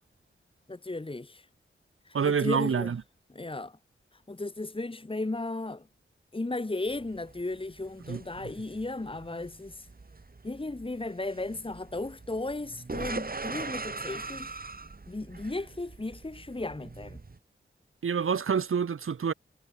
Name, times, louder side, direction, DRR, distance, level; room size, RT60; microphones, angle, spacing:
voice 1, 0.7-1.5 2.1-2.9 3.3-3.8 4.3-5.9 6.3-9.9 10.4-14.6 15.1-17.2, left 2 dB, 25° left, 2.1 m, -35 dB
voice 2, 2.1-3.0 8.1-8.2 18.0-19.3, right 6 dB, 90° right, 1.3 m, -27 dB
sound 1, 6.9-17.4, right 3 dB, 45° right, 5.0 m, -42 dB
wide cardioid pair, 85°, 21 cm